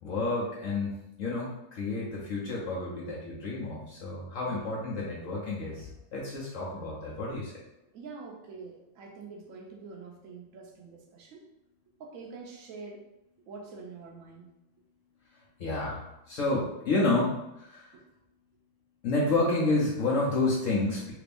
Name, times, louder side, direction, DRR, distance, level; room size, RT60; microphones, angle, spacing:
voice 1, 0.0-7.5 15.6-18.0 19.0-21.1, left 2 dB, 70° left, -5 dB, 0.7 m, -30 dB
voice 2, 7.9-11.4 12.0-13.0 13.5-14.5 17.9-18.0, right 4 dB, 75° right, 0 dB, 0.7 m, -45 dB
3.3 x 2.5 x 3.4 m, 0.91 s
omnidirectional pair, 2.1 m